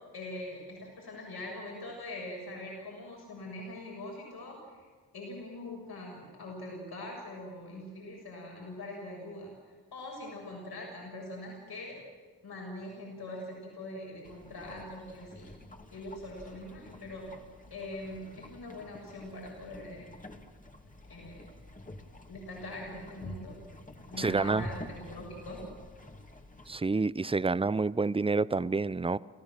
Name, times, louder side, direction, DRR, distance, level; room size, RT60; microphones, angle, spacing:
voice 1, 0.1-4.8 5.1-9.5 9.9-12.0 12.4-15.5 15.9-17.4 17.7-20.1 21.1-21.5 22.3-23.6 24.1-25.6, left 1 dB, 65° left, 7.0 m, -42 dB
sound 1, 14.2-26.8, left 1 dB, 20° left, 2.5 m, -49 dB
voice 2, 24.2-24.7 26.7-29.2, right 3 dB, 15° right, 0.5 m, -28 dB
29.5 x 15.0 x 7.6 m
supercardioid pair, 45°, 41 cm